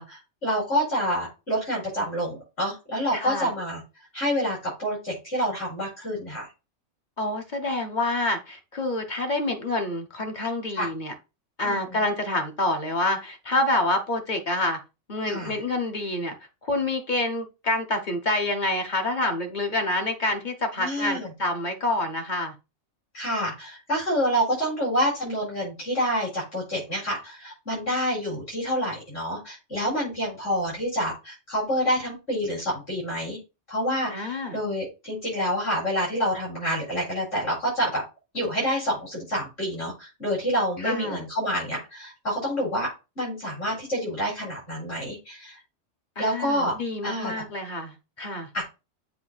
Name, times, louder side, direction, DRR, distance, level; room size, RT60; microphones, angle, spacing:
voice 1, 0.0-3.8 4.1-6.5 10.7-10.9 11.6-12.0 15.2-15.6 20.8-21.3 23.1-33.4 33.7-38.0 38.3-42.9 43.2-45.6 46.2-46.8 47.0-47.4 48.5-48.6, equal, 55° left, -6 dB, 4.6 m, -28 dB
voice 2, 3.1-3.5 7.2-11.1 11.6-14.8 15.1-16.3 16.6-22.5 34.1-34.6 40.8-41.2 46.2-48.5, left 2 dB, 40° left, 5 dB, 1.1 m, -27 dB
7.6 x 2.8 x 5.6 m, 0.28 s
omnidirectional pair, 1.3 m